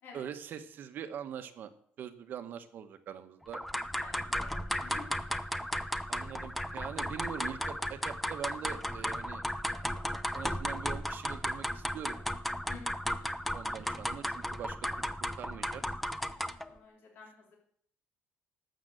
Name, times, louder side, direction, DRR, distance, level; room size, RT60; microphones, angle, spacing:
voice 1, 0.1-1.7 2.0-3.6 6.1-9.4 10.3-12.2 13.5-15.8, right 9 dB, 55° right, 9 dB, 1.1 m, -43 dB
sound 1, 3.5-16.7, equal, 5° left, 0.6 m, -35 dB
voice 2, 3.9-5.1 12.7-13.2 16.3-17.6, left 5 dB, 60° left, 0 dB, 3.3 m, -51 dB
12.0 x 7.4 x 7.7 m, 0.62 s
cardioid pair, 130°, 4 cm